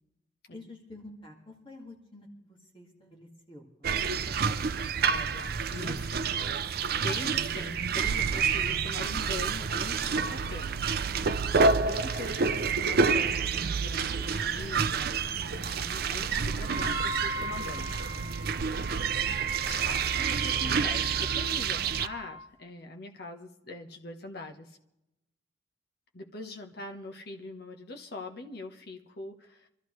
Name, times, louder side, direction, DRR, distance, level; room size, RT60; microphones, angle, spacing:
voice 1, 0.5-4.7 16.8-16.9, left 2 dB, 25° left, -1 dB, 2.0 m, -50 dB
sound 1, 3.8-22.1, right 5 dB, 50° right, 0.5 m, -28 dB
voice 2, 5.1-10.9 11.8-18.0 19.7-24.8 26.1-29.7, left 2 dB, 55° left, 3 dB, 1.1 m, -43 dB
Wind instrument woodwind instrument, 16.6-22.5, equal, 5° right, 1.3 m, -40 dB
25.0 x 13.5 x 3.2 m, 0.88 s
head